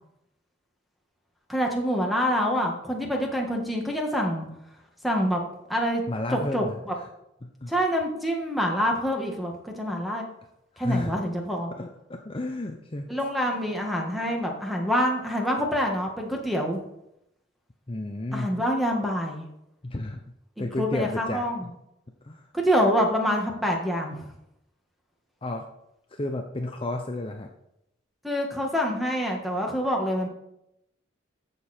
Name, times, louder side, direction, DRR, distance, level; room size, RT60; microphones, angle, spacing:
voice 1, 1.5-4.5 5.0-5.4 5.7-6.0 6.3-6.9 7.7-10.2 10.8-11.7 13.1-16.8 18.3-19.4 20.6-21.7 22.5-24.2 28.2-30.3, equal, ahead, 1 dB, 1.7 m, -26 dB
voice 2, 6.1-7.1 7.4-7.7 10.7-11.1 11.8-13.0 17.9-18.5 19.8-20.2 20.6-21.4 22.2-22.5 25.4-25.7 26.1-27.5, left 2 dB, 30° left, 4 dB, 0.6 m, -32 dB
14.5 x 6.7 x 4.4 m, 0.83 s
head